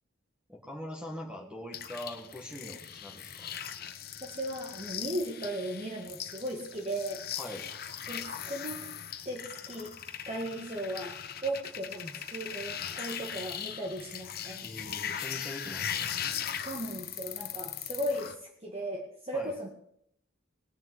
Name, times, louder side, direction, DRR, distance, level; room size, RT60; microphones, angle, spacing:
voice 1, 0.5-3.5 7.4-7.7 14.6-16.1 19.3-19.5, left 1 dB, 5° right, 0 dB, 1.8 m, -42 dB
sound 1, 1.7-18.3, left 9 dB, 50° left, 1.2 m, -39 dB
voice 2, 4.2-7.2 8.1-8.9 9.3-9.9 10.3-14.7 16.4-19.7, right 1 dB, 30° right, -1 dB, 1.9 m, -37 dB
19.0 x 7.1 x 9.4 m, 0.71 s
head